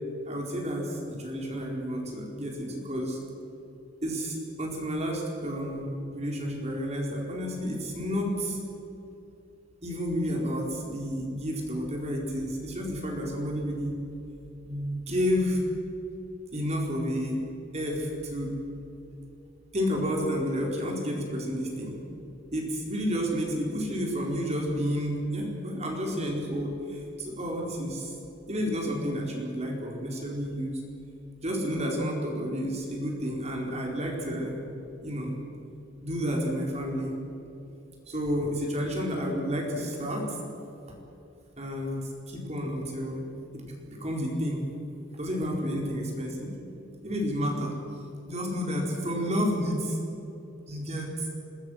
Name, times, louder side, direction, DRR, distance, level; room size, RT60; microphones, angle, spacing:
voice 1, 0.3-3.2 4.0-8.6 9.8-14.0 14.6-15.6 16.5-17.4 17.7-18.5 19.7-22.0 22.5-28.1 28.5-30.8 31.4-34.6 35.0-35.4 36.0-37.1 38.1-40.4 41.6-42.0 42.3-43.2 43.5-44.6 45.1-46.5 47.0-47.7 48.2-50.0 50.7-51.3, equal, 35° right, 0 dB, 4.4 m, -30 dB
26.5 x 22.5 x 6.5 m, 2.9 s
head